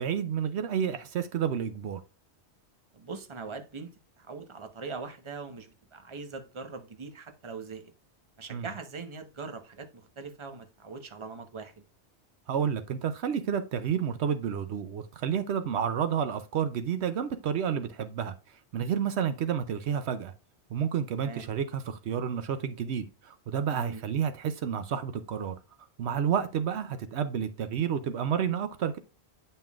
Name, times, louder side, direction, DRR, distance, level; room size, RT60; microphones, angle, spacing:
voice 1, 0.0-2.0 8.5-8.7 12.5-20.3 20.7-25.5 26.0-29.0, right 8 dB, 75° right, 0.9 m, -30 dB
voice 2, 2.9-3.9 4.2-7.8 8.4-11.7 21.2-21.5 23.7-24.0, right 4 dB, 30° right, 1.0 m, -41 dB
9.0 x 5.5 x 2.4 m
omnidirectional pair, 1.1 m